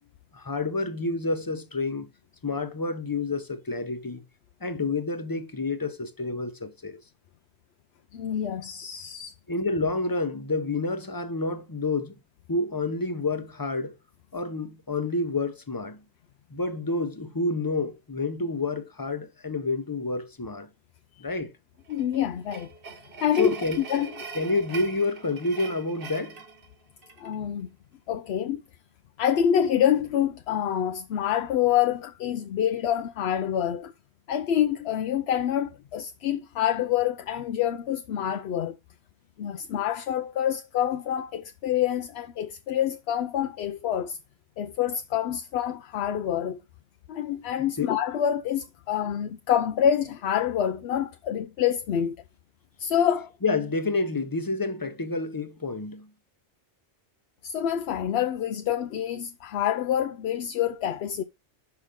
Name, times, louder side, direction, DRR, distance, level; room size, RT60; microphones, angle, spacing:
voice 1, 0.3-2.1 2.4-4.2 4.6-7.0 9.5-12.1 12.5-13.9 14.3-16.0 16.5-20.7 21.2-21.5 23.4-23.8 24.3-26.4 47.8-47.9 53.4-56.1, left 3 dB, 20° left, 0.7 m, -29 dB
voice 2, 8.1-9.3 21.9-22.7 23.2-23.5 23.9-24.1 27.2-27.7 28.1-28.6 29.2-33.9 34.3-38.8 39.4-44.2 44.6-46.6 47.1-52.2 52.8-53.3 57.4-61.2, left 9 dB, 70° left, 0.8 m, -26 dB
sound 1, 21.9-27.4, right 5 dB, 55° right, 1.2 m, -42 dB
6.4 x 5.8 x 3.7 m
omnidirectional pair, 1.2 m